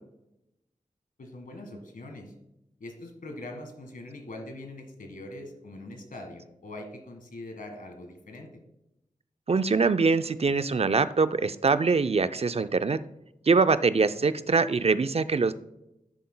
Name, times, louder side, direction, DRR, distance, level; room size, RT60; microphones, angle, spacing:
voice 1, 1.2-2.3 2.8-8.5 14.2-14.3, left 1 dB, 90° left, 4 dB, 1.6 m, -42 dB
voice 2, 9.5-13.0 13.5-15.5, right 4 dB, 45° right, 12 dB, 0.4 m, -23 dB
10.5 x 9.3 x 2.2 m, 0.87 s
cardioid pair, 40°, 14 cm